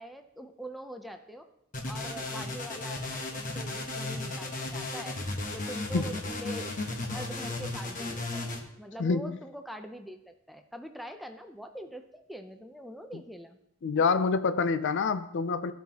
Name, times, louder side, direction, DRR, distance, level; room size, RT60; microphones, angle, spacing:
voice 1, 0.0-1.5 1.9-5.2 5.5-6.7 7.1-13.6 13.9-14.0, equal, ahead, 6 dB, 0.5 m, -43 dB
sound 1, 1.7-8.6, left 2 dB, 40° left, 1.1 m, -35 dB
voice 2, 9.0-9.3 13.8-15.7, left 4 dB, 55° left, 11 dB, 0.4 m, -26 dB
15.0 x 5.6 x 2.9 m, 0.78 s
head